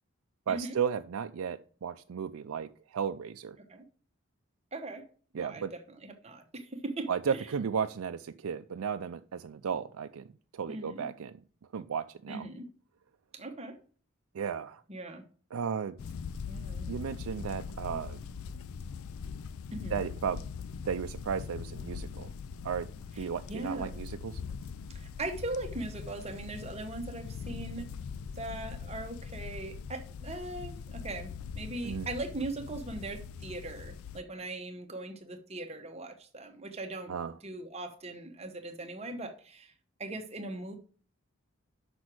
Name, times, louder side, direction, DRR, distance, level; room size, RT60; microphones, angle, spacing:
voice 1, 0.5-3.6 5.3-5.7 7.1-10.2 10.5-11.3 11.7-12.4 14.3-14.8 15.5-16.0 16.9-18.2 19.9-20.5 20.9-22.3 22.6-22.9 23.2-24.4 31.8-32.1 37.1-37.3, right 7 dB, 85° right, 0.4 m, -34 dB
voice 2, 4.7-5.0 5.3-7.5 10.7-11.1 12.3-12.7 13.3-13.8 14.9-15.2 16.5-16.9 17.9-18.0 19.7-20.0 23.1-24.0 24.9-27.9 28.4-37.1 37.4-39.7 40.0-40.8, right 2 dB, 30° right, 1.0 m, -40 dB
sound 1, 16.0-34.2, left 6 dB, 80° left, 0.4 m, -41 dB
6.2 x 6.0 x 6.1 m
head